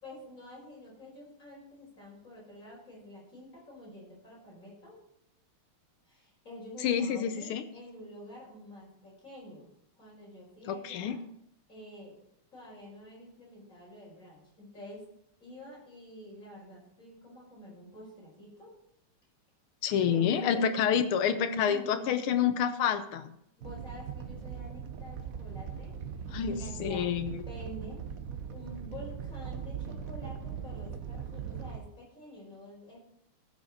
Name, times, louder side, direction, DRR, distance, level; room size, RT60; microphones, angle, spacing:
voice 1, 0.0-5.0 6.1-9.7 10.0-11.2 11.7-12.2 12.5-15.0 15.4-18.7 20.0-20.7 21.6-22.1 23.6-26.0 26.5-28.0 28.5-33.0, left 1 dB, 35° left, -4 dB, 5.6 m, -48 dB
voice 2, 6.8-7.6 10.7-11.2 19.8-23.3 26.3-27.4, left 8 dB, 80° left, 9 dB, 1.7 m, -28 dB
Animal, 23.6-31.8, right 7 dB, 55° right, 0.9 m, -40 dB
15.5 x 6.5 x 4.2 m, 0.76 s
omnidirectional pair, 2.4 m